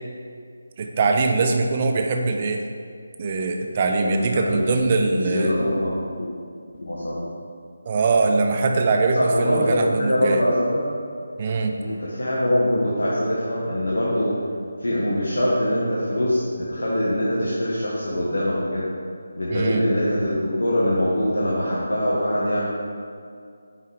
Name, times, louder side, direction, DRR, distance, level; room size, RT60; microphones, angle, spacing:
voice 1, 0.8-2.6 3.2-5.5 7.9-10.4 11.4-11.7 19.5-19.8, right 3 dB, 30° right, 3 dB, 0.6 m, -22 dB
voice 2, 4.0-4.7 5.0-6.3 6.8-7.3 9.2-10.8 11.8-14.3 14.8-18.9 19.4-22.7, equal, 70° left, -7 dB, 1.2 m, -23 dB
5.7 x 5.0 x 4.8 m, 2.3 s
figure-of-eight pair, 155°, 0 cm